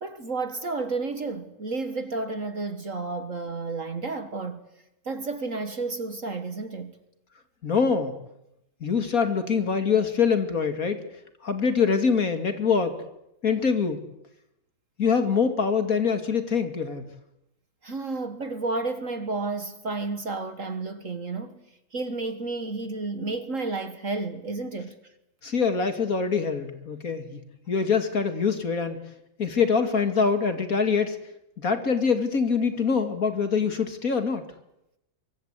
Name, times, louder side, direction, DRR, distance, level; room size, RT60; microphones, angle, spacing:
voice 1, 0.0-4.6 5.1-7.0 17.8-21.6 21.9-25.0, right 3 dB, 40° right, 1.8 m, -31 dB
voice 2, 7.6-8.2 8.8-11.0 11.4-13.0 13.4-14.0 15.0-17.1 25.4-27.4 27.7-29.0 29.4-31.2 31.6-34.4, left 5 dB, 45° left, 2.6 m, -24 dB
24.5 x 24.0 x 8.2 m
omnidirectional pair, 2.2 m